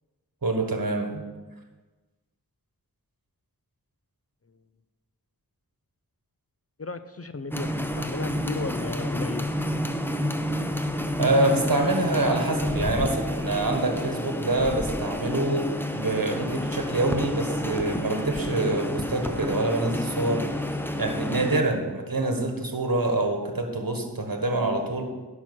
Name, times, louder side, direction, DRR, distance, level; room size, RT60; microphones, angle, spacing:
voice 1, 0.4-1.2 11.2-20.5 21.0-25.0, right 2 dB, 70° right, 4 dB, 1.5 m, -26 dB
voice 2, 6.8-7.7 8.0-9.5, left 3 dB, 40° left, 11 dB, 0.6 m, -34 dB
sound 1, 7.5-21.6, equal, 5° left, 0.8 m, -29 dB
10.5 x 6.0 x 6.2 m, 1.3 s
wide cardioid pair, 45°, 36 cm